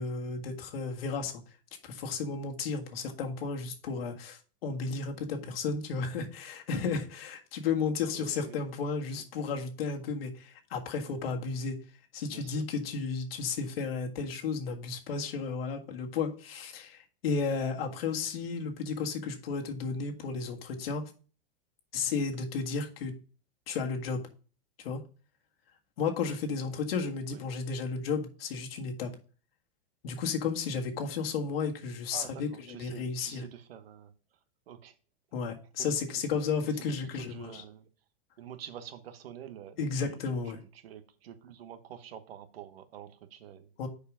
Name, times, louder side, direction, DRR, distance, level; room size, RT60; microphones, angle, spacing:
voice 1, 0.0-1.4 1.8-11.8 12.1-21.0 21.9-23.1 23.7-24.3 24.8-25.0 26.0-29.1 30.0-33.4 35.3-37.6 39.8-40.6 43.8-43.9, left 5 dB, 80° left, 1.8 m, -33 dB
voice 2, 8.1-8.7 9.2-9.3 12.3-12.6 27.3-27.4 32.1-34.1 34.7-35.0 35.8-35.9 36.7-37.9 38.4-40.2 40.5-43.7, right 9 dB, 80° right, 1.3 m, -47 dB
6.7 x 5.0 x 5.0 m
supercardioid pair, 135°, 29 cm